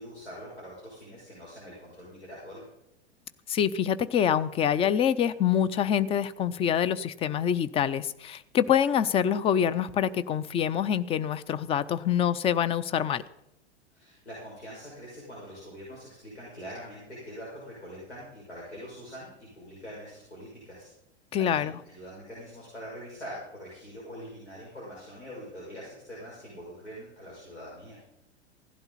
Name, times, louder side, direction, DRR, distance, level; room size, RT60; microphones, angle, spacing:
voice 1, 0.0-2.6 13.9-20.9 21.4-28.0, equal, 80° left, -6 dB, 6.3 m, -44 dB
voice 2, 3.5-13.2 21.3-21.7, left 9 dB, 15° left, 15 dB, 0.5 m, -26 dB
17.0 x 11.5 x 4.2 m, 0.85 s
figure-of-eight pair, 95°, 34 cm